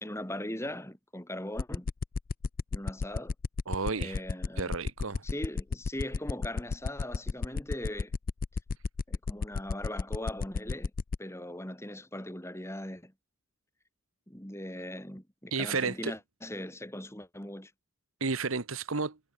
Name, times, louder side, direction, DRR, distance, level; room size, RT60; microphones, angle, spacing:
voice 1, 0.0-1.9 2.7-3.3 3.9-4.7 5.2-8.1 9.1-10.9 11.2-13.1 14.3-17.7, left 1 dB, 10° left, 3.0 m, -39 dB
sound 1, 1.6-11.2, left 4 dB, 40° left, 0.4 m, -31 dB
voice 2, 3.7-4.2 4.6-5.2 15.5-16.1 18.2-19.2, right 4 dB, 70° right, 1.2 m, -32 dB
head